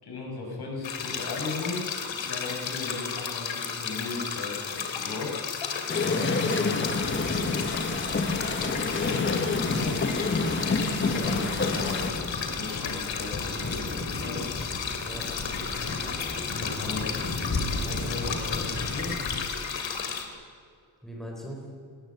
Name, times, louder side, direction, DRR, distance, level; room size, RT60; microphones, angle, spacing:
voice 1, 0.0-1.9 2.2-5.4 6.6-6.8 8.1-10.3 11.0-14.4 16.7-17.2 17.8-19.2, left 3 dB, 60° left, 0 dB, 6.0 m, -37 dB
sound 1, 0.8-20.2, left 6 dB, 85° left, 2.7 m, -33 dB
sound 2, 5.9-12.1, left 3 dB, 25° left, 1.4 m, -28 dB
voice 2, 6.0-7.0 11.1-11.4 15.0-15.3 21.0-21.6, equal, ahead, -1 dB, 3.8 m, -39 dB
sound 3, 6.8-19.4, left 2 dB, 40° left, 5.7 m, -35 dB
20.0 x 18.0 x 8.1 m, 2.1 s
wide cardioid pair, 150°, 44 cm